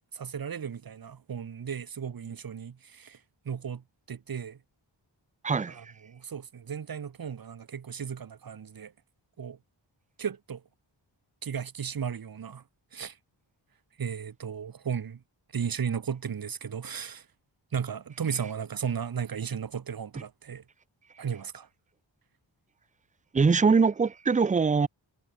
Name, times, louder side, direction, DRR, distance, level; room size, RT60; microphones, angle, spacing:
voice 1, 0.1-3.2 3.4-3.8 4.1-4.6 5.8-8.9 9.4-9.6 10.2-10.6 11.4-12.6 12.9-13.2 14.0-15.2 15.5-17.2 17.7-20.6 21.2-21.7, right 7 dB, 50° right, 0.8 m, -35 dB
voice 2, 5.4-5.9 20.1-20.2 23.3-24.9, right 5 dB, 20° right, 0.3 m, -23 dB
wide cardioid pair, 85°, 47 cm